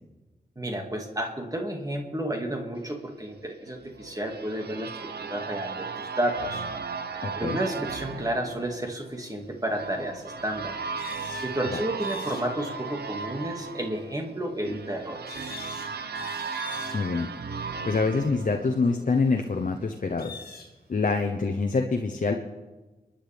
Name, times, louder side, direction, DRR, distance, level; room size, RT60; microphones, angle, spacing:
voice 1, 0.6-6.6 7.4-10.8 11.4-15.4, right 1 dB, 20° right, 2 dB, 2.2 m, -31 dB
sound 1, 3.7-19.3, right 5 dB, 90° right, 0.9 m, -36 dB
voice 2, 7.2-7.6 16.9-17.3 17.8-20.3 20.9-22.3, left 4 dB, 55° left, 4 dB, 0.9 m, -25 dB
sound 2, 9.9-10.0 11.0-11.6 12.0-12.5 13.8-13.9 15.3-17.1 17.4-17.5 17.9-18.0 20.2-20.7, left 4 dB, 70° left, 2.1 m, -43 dB
25.5 x 10.0 x 3.5 m, 1.2 s
cardioid pair, 55°, 16 cm